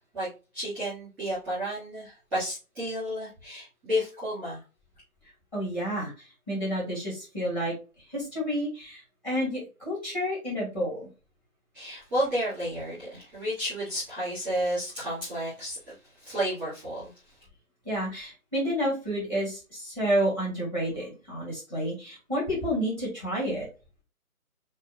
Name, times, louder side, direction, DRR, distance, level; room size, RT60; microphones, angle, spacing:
voice 1, 0.1-4.6 11.7-17.3, equal, ahead, 2.4 m, -32 dB
voice 2, 5.5-7.7 8.1-11.1 17.8-23.7, equal, 15° left, 2.5 m, -30 dB
7.4 x 2.8 x 2.4 m
figure-of-eight pair, 145°, 45 cm